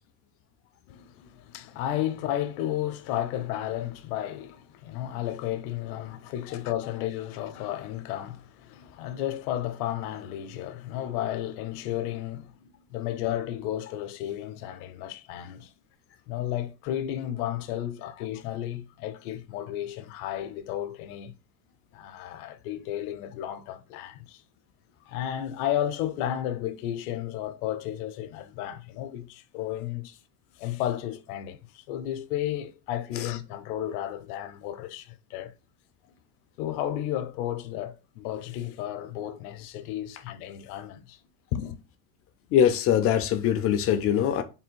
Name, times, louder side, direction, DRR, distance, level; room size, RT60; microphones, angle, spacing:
voice 1, 0.9-15.7 16.3-21.3 21.9-24.4 25.1-30.2 30.6-35.5 36.6-41.2 41.5-41.8, left 12 dB, 70° left, 0.7 m, -33 dB
voice 2, 42.5-44.4, left 9 dB, 30° left, 0.4 m, -22 dB
3.5 x 2.3 x 4.4 m
supercardioid pair, 125°, 47 cm